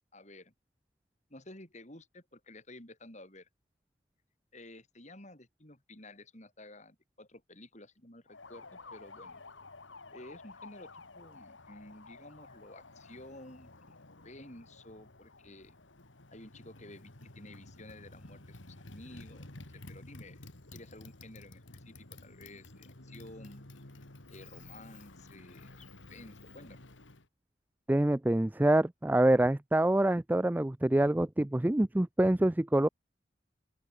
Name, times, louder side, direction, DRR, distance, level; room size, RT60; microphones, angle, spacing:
voice 1, 0.1-0.5 1.3-3.5 4.5-9.4 10.1-13.9 14.2-15.8 16.3-20.4 20.7-23.7 24.3-26.9, left 1 dB, 40° left, 5.2 m, -52 dB
Motorcycle, 8.3-27.3, left 2 dB, 80° left, 2.6 m, -52 dB
voice 2, 27.9-32.9, right 1 dB, 10° right, 0.3 m, -26 dB
open air
head